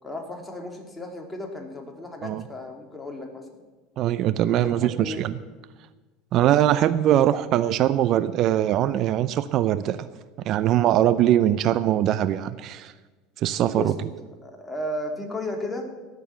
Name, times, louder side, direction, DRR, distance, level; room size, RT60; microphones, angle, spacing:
voice 1, 0.0-3.6 4.6-5.2 13.7-13.9 14.2-15.9, left 1 dB, 15° left, 2 dB, 3.1 m, -34 dB
voice 2, 4.0-5.3 6.3-10.0 10.4-12.9 13.4-13.9, right 12 dB, 55° right, 14 dB, 0.6 m, -22 dB
17.0 x 7.0 x 7.1 m, 1.3 s
hypercardioid pair, 90°, 0 cm